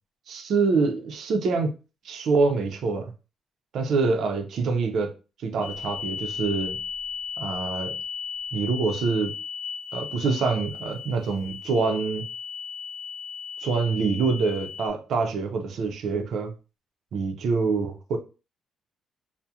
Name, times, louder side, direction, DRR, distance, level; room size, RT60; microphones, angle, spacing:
voice 1, 0.3-1.7 2.0-3.1 3.7-5.1 5.4-6.8 7.4-7.9 8.5-9.3 9.9-12.3 13.6-16.5 17.1-18.2, right 4 dB, 70° right, 5 dB, 0.5 m, -25 dB
sound 1, 5.6-14.9, left 6 dB, 75° left, 0.4 m, -36 dB
2.7 x 2.0 x 2.3 m, 0.32 s
cardioid pair, 90°, 0 cm